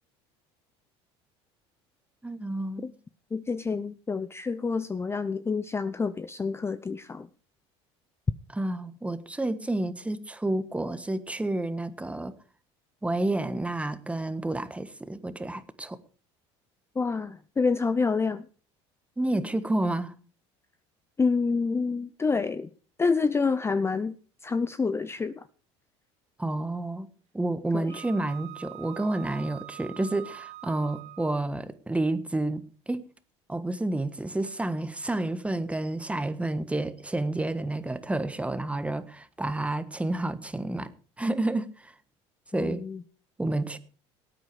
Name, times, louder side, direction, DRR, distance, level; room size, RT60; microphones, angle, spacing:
voice 1, 2.2-2.9 8.5-12.3 13.0-16.0 19.2-20.1 26.4-27.1 27.3-33.0 33.5-40.9 41.2-41.9 42.5-42.8 43.4-43.8, right 2 dB, 10° right, 12 dB, 1.4 m, -30 dB
voice 2, 3.3-7.3 17.0-18.4 21.2-22.7 23.0-24.1 24.4-25.5 27.7-28.0 42.5-43.0, left 4 dB, 20° left, 13 dB, 0.6 m, -28 dB
Wind instrument woodwind instrument, 27.9-31.5, right 16 dB, 60° right, 0.8 m, -44 dB
18.5 x 9.1 x 4.9 m, 0.40 s
supercardioid pair, 95°, 14 cm